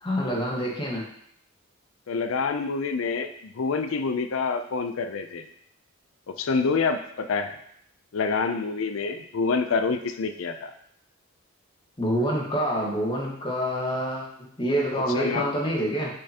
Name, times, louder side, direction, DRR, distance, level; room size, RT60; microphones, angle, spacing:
voice 1, 0.0-1.0 12.0-14.3 14.6-16.1, equal, 25° left, -3 dB, 1.4 m, -26 dB
voice 2, 2.1-5.4 6.3-7.6 8.1-10.7 14.9-15.5, left 4 dB, 70° left, 8 dB, 0.4 m, -27 dB
6.7 x 5.4 x 2.9 m, 0.71 s
head